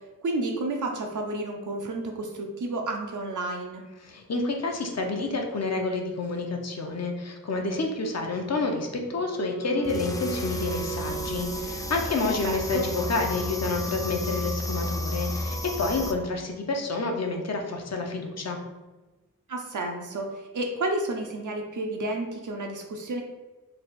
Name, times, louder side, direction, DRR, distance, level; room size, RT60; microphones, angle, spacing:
voice 1, 0.2-3.8 12.2-12.9 19.5-23.2, right 2 dB, 70° right, 2 dB, 0.5 m, -31 dB
voice 2, 4.0-18.6, left 3 dB, 55° left, 2 dB, 0.7 m, -29 dB
Wind instrument woodwind instrument, 8.6-12.5, right 6 dB, 90° left, 0.8 m, -38 dB
sound 1, 9.8-16.1, left 1 dB, 10° left, 0.3 m, -33 dB
Electric guitar / Strum, 12.6-18.0, equal, 85° right, 1.1 m, -47 dB
3.3 x 2.4 x 4.1 m, 1.2 s
wide cardioid pair, 85°, 32 cm